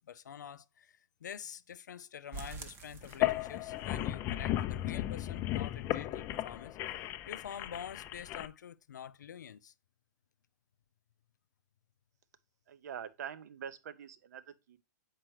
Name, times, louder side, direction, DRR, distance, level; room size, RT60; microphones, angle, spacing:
voice 1, 0.0-9.7, left 8 dB, 90° left, 0.4 m, -47 dB
sound 1, 2.3-3.9 4.2-4.3 4.7-4.8 5.2-5.3, right 4 dB, 25° right, 0.7 m, -47 dB
sound 2, 3.0-8.5, left 14 dB, 25° left, 0.3 m, -35 dB
voice 2, 12.7-14.8, right 8 dB, 70° right, 0.6 m, -45 dB
7.5 x 4.5 x 3.1 m
hypercardioid pair, 140°, 9 cm